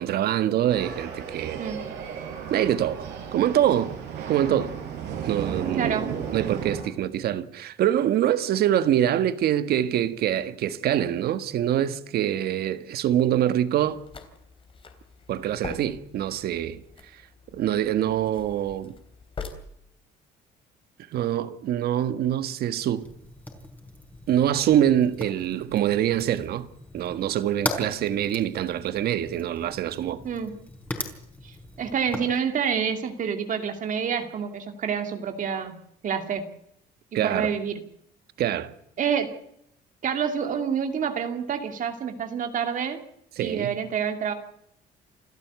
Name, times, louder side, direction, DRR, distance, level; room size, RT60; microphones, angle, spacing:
voice 1, 0.0-1.6 2.5-3.9 4.3-4.7 5.2-6.0 6.3-14.0 15.3-16.8 17.5-18.9 21.1-23.0 24.3-26.7 26.9-30.2 37.1-37.5 38.4-38.7 43.4-43.7, right 11 dB, 65° right, 1.6 m, -24 dB
sound 1, 0.7-6.8, right 7 dB, 80° right, 5.7 m, -34 dB
voice 2, 1.6-1.9 5.8-6.1 30.2-30.5 31.4-35.8 36.0-36.5 37.2-37.8 39.0-39.4 40.0-43.0 43.4-44.3, right 7 dB, 50° right, 2.5 m, -28 dB
sound 2, 13.8-19.5, left 5 dB, 30° left, 3.5 m, -43 dB
Fire, 23.0-32.4, left 1 dB, 10° left, 4.6 m, -38 dB
28.5 x 12.5 x 8.2 m
cardioid pair, 110°, 17 cm